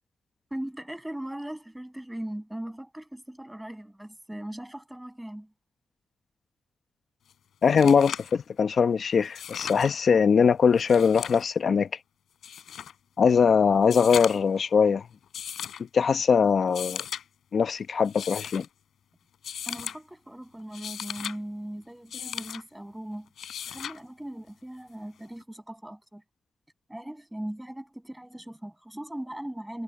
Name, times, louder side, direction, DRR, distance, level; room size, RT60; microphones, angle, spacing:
voice 1, 0.5-5.5 19.7-23.3 23.7-26.2 26.9-29.8, right 1 dB, 5° right, 7.7 m, -39 dB
Flipping through a book, 7.3-7.4 7.6-8.4 9.2-9.9 10.8-11.5 12.4-12.9 13.8-14.6 15.3-15.8 16.6-17.2 18.0-18.7 19.4-20.0 20.6-21.4 22.1-22.6 23.4-24.0 25.4-25.5, left 9 dB, 85° left, 7.8 m, -36 dB
voice 2, 7.6-11.9 13.2-15.1 15.8-17.0 17.5-18.7, left 6 dB, 60° left, 0.9 m, -21 dB
cardioid pair, 90°, 0 cm